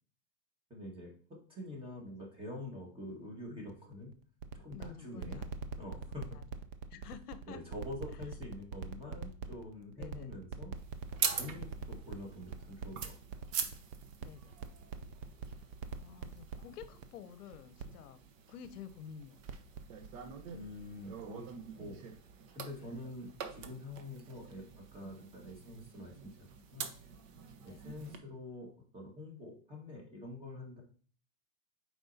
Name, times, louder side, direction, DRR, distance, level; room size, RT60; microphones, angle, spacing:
voice 1, 0.7-1.1 1.5-4.1 4.5-5.4 5.8-6.3 7.5-10.7 11.3-13.4 20.5-21.4 21.8-22.0 22.5-26.3 26.7-26.9 27.6-30.8, left 1 dB, 10° right, -1 dB, 1.7 m, -46 dB
sound 1, 3.7-17.0 17.5-17.8 18.1-18.2 18.6-18.7 19.2-19.8 20.0-20.1, right 6 dB, 40° right, 0.6 m, -42 dB
voice 2, 4.7-5.5 6.9-7.6 8.1-8.2 10.0-10.3 14.2-14.5 15.5-15.6 16.0-18.2 18.5-19.4 27.7-27.8, left 8 dB, 70° left, 11 dB, 0.8 m, -50 dB
sound 2, 10.8-28.2, right 7 dB, 55° right, 1.1 m, -44 dB
7.8 x 4.8 x 2.7 m, 0.44 s
hypercardioid pair, 135°, 48 cm